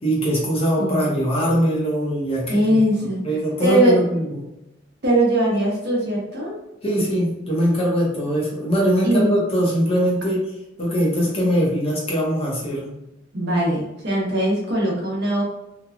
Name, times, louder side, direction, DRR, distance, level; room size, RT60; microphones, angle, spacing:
voice 1, 0.0-2.8 3.2-4.5 6.8-10.5 10.8-12.9, equal, 30° left, -5 dB, 0.7 m, -21 dB
voice 2, 0.8-1.1 2.5-3.2 3.6-4.0 5.0-6.5 9.0-9.3 13.3-15.4, right 1 dB, 55° right, -4 dB, 0.9 m, -20 dB
2.9 x 2.2 x 2.4 m, 0.92 s
head